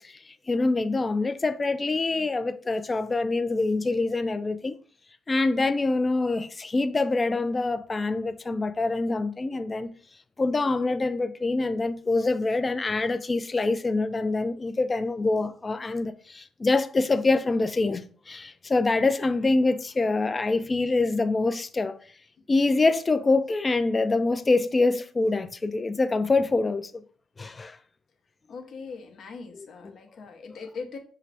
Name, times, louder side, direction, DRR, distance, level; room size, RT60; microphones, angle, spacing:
voice 1, 0.5-4.7 5.3-9.9 10.4-22.0 22.5-27.0 27.4-27.8, left 3 dB, 30° left, 0.4 m, -25 dB
voice 2, 28.5-31.0, left 4 dB, 60° left, 0.7 m, -40 dB
5.6 x 2.5 x 3.2 m
cardioid pair, 90°, 0 cm